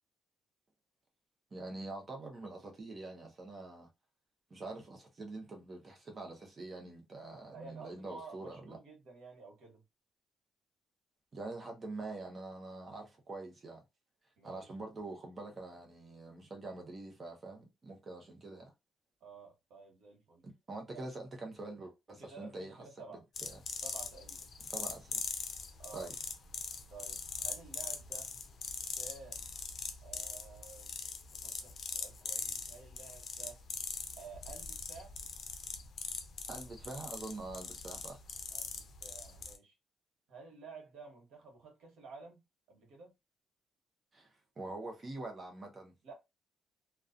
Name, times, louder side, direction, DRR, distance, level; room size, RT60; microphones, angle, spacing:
voice 1, 1.5-3.9 4.5-8.8 11.3-13.8 14.4-18.7 20.4-22.8 23.1-23.6 24.6-25.2 25.9-26.1 36.5-38.2 44.1-45.9, right 2 dB, 35° right, 0.8 m, -45 dB
voice 2, 7.5-9.8 14.4-14.7 19.2-20.5 20.9-21.1 22.2-23.2 23.8-24.5 25.8-26.1 26.9-28.3 28.9-29.5 30.0-31.0 31.3-33.6 34.2-35.2 38.5-39.7 40.3-42.4 42.7-43.1 46.0-46.1, right 4 dB, 80° right, 1.0 m, -52 dB
sound 1, 23.3-39.6, left 5 dB, 55° left, 0.5 m, -42 dB
2.4 x 2.3 x 2.4 m
cardioid pair, 90°, 0 cm